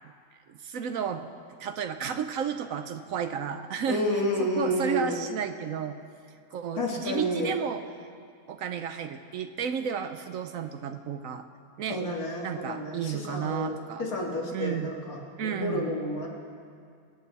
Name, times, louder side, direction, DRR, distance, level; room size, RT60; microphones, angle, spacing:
voice 1, 0.5-1.3 1.6-6.0 6.5-7.8 8.5-11.4 11.8-12.0 12.4-14.0 14.5-14.9 15.4-15.9, right 7 dB, 70° right, 8 dB, 1.0 m, -32 dB
voice 2, 3.9-5.2 6.8-7.5 11.9-16.3, left 1 dB, 70° left, -2 dB, 2.5 m, -30 dB
26.0 x 8.9 x 4.1 m, 2.3 s
omnidirectional pair, 1.6 m